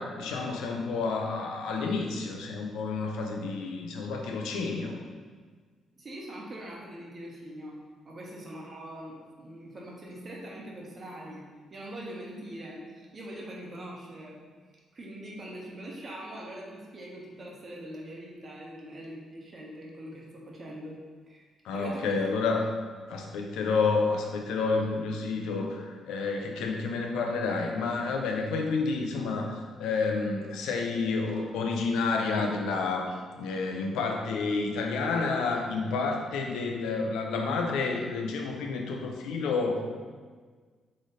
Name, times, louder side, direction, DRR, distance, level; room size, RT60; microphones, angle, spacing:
voice 1, 0.0-5.0 21.6-22.6 23.1-33.1 33.4-39.8, left 4 dB, 90° left, 2 dB, 0.5 m, -30 dB
voice 2, 5.9-7.8 8.0-14.4 14.9-21.0 21.3-21.5 21.7-22.2, right 1 dB, 40° right, -2 dB, 1.0 m, -42 dB
3.9 x 3.2 x 4.0 m, 1.5 s
cardioid pair, 90°, 0 cm